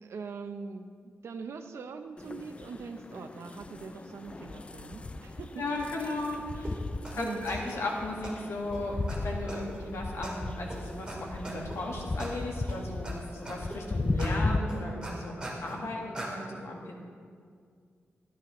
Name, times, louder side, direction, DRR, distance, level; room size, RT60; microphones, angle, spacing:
voice 1, 0.0-5.7 6.3-6.4 7.1-7.5 16.5-16.6, right 5 dB, 85° right, 7 dB, 0.7 m, -42 dB
sound 1, 2.2-14.6, left 3 dB, 25° left, 0.4 m, -36 dB
voice 2, 5.6-6.7 7.1-15.3 15.6-17.0, left 2 dB, 90° left, -1 dB, 1.7 m, -35 dB
sound 2, 6.6-6.7 7.0-7.1 7.5-7.8 8.2-8.3 8.7-8.8 9.1-9.2 9.5-9.8 10.2-10.3 10.7-10.8 11.1-11.2 11.4-11.8 12.2-12.3 12.7-13.1 13.5-13.8 14.2-14.3 14.7-15.8 16.1-16.3, right 1 dB, 20° right, 2.0 m, -40 dB
13.0 x 11.0 x 3.1 m, 2.1 s
wide cardioid pair, 135°, 4 cm